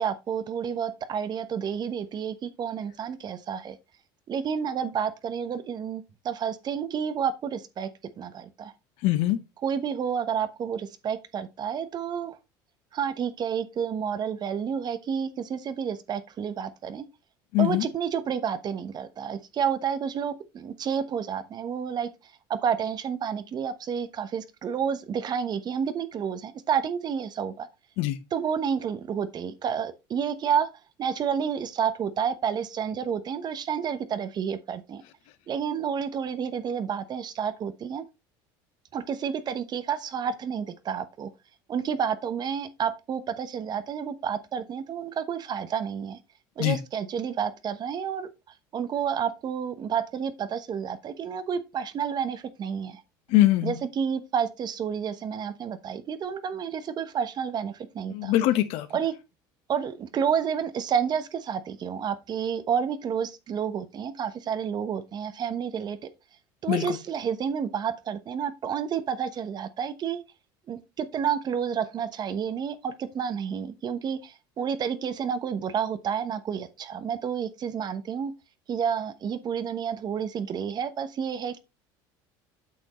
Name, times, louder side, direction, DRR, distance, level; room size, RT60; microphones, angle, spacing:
voice 1, 0.0-3.8 4.3-7.9 8.2-8.7 9.6-12.4 12.9-17.1 17.6-22.1 22.5-27.7 28.3-30.7 31.0-35.0 35.5-38.0 38.9-41.3 41.7-46.2 46.6-48.3 48.7-53.0 53.6-58.3 58.9-59.1 59.7-66.0 66.6-70.2 70.7-78.3 78.7-81.6, right 7 dB, 40° right, 1.1 m, -30 dB
voice 2, 9.0-9.4 17.5-17.9 28.0-28.2 46.6-46.8 53.3-53.8 58.1-58.9 66.7-67.0, left 15 dB, 70° left, 1.2 m, -22 dB
8.6 x 6.3 x 3.1 m
supercardioid pair, 100°, 11 cm